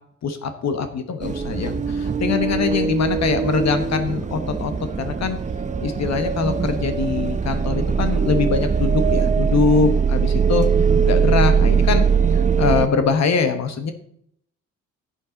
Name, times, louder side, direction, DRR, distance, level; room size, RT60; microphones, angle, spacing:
voice 1, 0.2-4.7 5.0-5.4 5.8-10.7 11.0-12.1 12.6-13.9, left 5 dB, 60° left, 8 dB, 1.3 m, -23 dB
sound 1, 1.2-12.9, right 6 dB, 25° right, 0.7 m, -21 dB
11.0 x 7.5 x 4.0 m, 0.66 s
cardioid pair, 90°, 30 cm